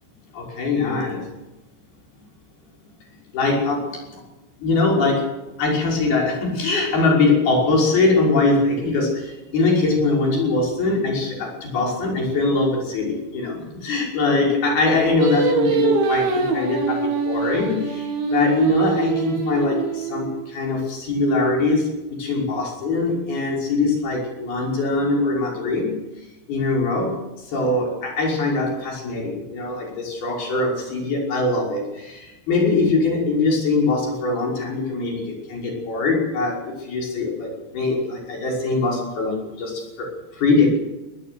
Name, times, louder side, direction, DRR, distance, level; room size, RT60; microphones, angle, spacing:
voice 1, 0.3-1.3 3.3-3.8 4.6-5.2 5.6-26.0 26.5-27.2 27.4-40.7, left 3 dB, 55° left, -1 dB, 7.6 m, -22 dB
Singing, 15.2-20.5, right 5 dB, 90° right, 5.2 m, -24 dB
23.0 x 18.5 x 7.0 m, 1.1 s
omnidirectional pair, 5.2 m